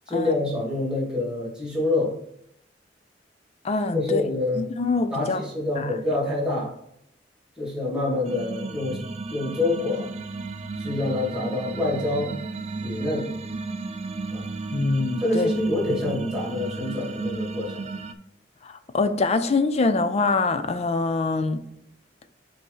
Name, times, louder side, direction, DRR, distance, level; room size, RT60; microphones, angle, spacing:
voice 1, 0.1-2.1 3.9-4.6 5.1-6.7 7.6-9.0 9.3-10.1 10.8-12.3 12.8-13.3 14.3-14.5 15.2-17.9, left 2 dB, 5° right, -5 dB, 2.5 m, -26 dB
voice 2, 3.6-4.2 4.5-5.4 5.8-5.9 14.7-15.5 18.6-21.6, left 3 dB, 40° left, 10 dB, 0.4 m, -24 dB
sound 1, 8.3-18.1, right 3 dB, 40° right, 0.4 m, -33 dB
8.0 x 2.8 x 5.5 m, 0.72 s
head